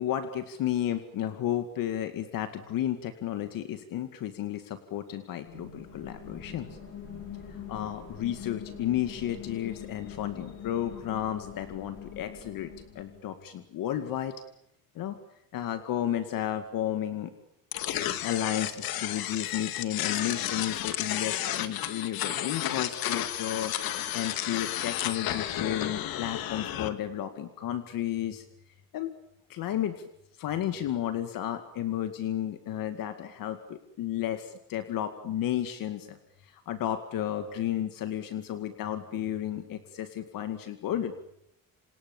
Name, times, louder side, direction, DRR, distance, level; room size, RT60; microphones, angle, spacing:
voice 1, 0.0-6.8 7.5-14.3 15.0-15.2 15.5-17.3 18.2-28.4 28.9-29.1 29.5-30.1 30.3-41.1, left 11 dB, 70° left, 8 dB, 2.2 m, -33 dB
sound 1, 5.5-13.2, left 7 dB, 40° left, 7.5 m, -44 dB
CD Player mechanics, 17.7-26.9, left 12 dB, 90° left, 2.3 m, -32 dB
28.0 x 27.0 x 7.3 m, 0.78 s
cardioid pair, 180°, 35 cm